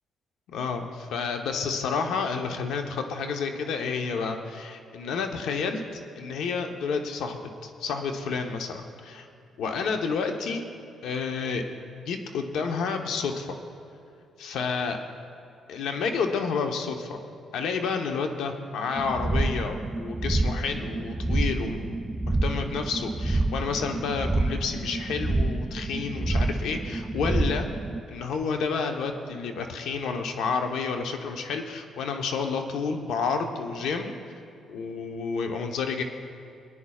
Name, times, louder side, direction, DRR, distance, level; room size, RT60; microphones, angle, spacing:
voice 1, 0.5-5.8 6.1-9.3 9.6-10.6 11.0-11.6 12.0-13.5 14.4-15.0 15.7-17.2 17.5-27.7 28.1-34.1 34.7-36.0, left 5 dB, 80° left, 4 dB, 1.0 m, -30 dB
sound 1, 19.0-28.0, right 2 dB, 20° right, 0.4 m, -28 dB
25.0 x 10.0 x 2.4 m, 2.6 s
cardioid pair, 90°, 0 cm